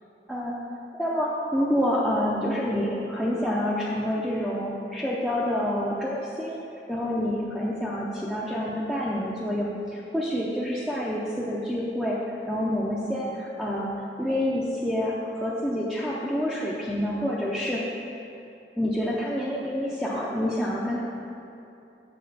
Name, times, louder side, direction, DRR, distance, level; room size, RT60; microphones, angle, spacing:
voice 1, 0.9-6.6 6.9-12.2 12.5-13.9 14.2-17.8 18.8-21.0, equal, ahead, -8 dB, 0.6 m, -27 dB
7.8 x 4.3 x 6.6 m, 2.7 s
head